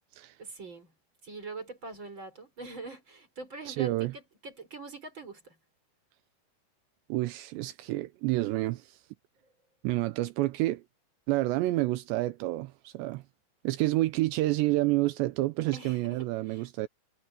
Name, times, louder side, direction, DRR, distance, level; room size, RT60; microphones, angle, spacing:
voice 1, 0.4-0.9 1.2-5.6 15.7-16.7, right 3 dB, 25° right, 5.1 m, -44 dB
voice 2, 3.7-4.1 7.1-9.0 9.8-10.8 11.3-13.2 13.6-16.9, right 18 dB, 85° right, 2.5 m, -29 dB
omnidirectional pair, 5.9 m